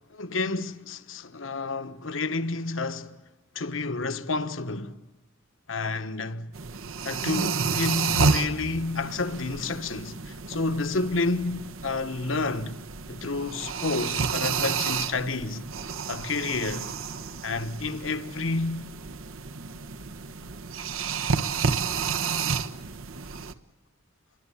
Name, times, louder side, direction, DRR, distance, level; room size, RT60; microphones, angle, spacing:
voice 1, 0.1-3.1 3.5-5.0 5.7-6.5 7.0-12.8 13.1-15.7 16.1-16.9 17.4-18.8, left 3 dB, 70° left, 1.3 m, -30 dB
sound 1, 6.5-23.5, right 5 dB, 90° right, 1.2 m, -31 dB
27.0 x 23.0 x 8.6 m
head